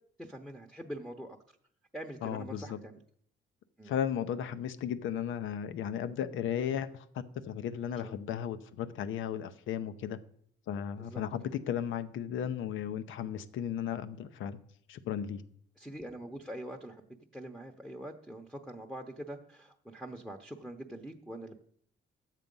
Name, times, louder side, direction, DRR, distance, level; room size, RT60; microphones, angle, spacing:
voice 1, 0.2-1.4 1.9-3.0 3.8-3.9 8.0-8.1 11.0-11.2 15.8-17.0 17.3-21.5, right 1 dB, ahead, 5 dB, 0.9 m, -44 dB
voice 2, 2.2-2.8 3.8-10.2 10.7-14.6 14.9-15.4, left 9 dB, 80° left, 12 dB, 0.7 m, -35 dB
10.0 x 7.5 x 5.4 m, 0.66 s
cardioid pair, 90°, 20 cm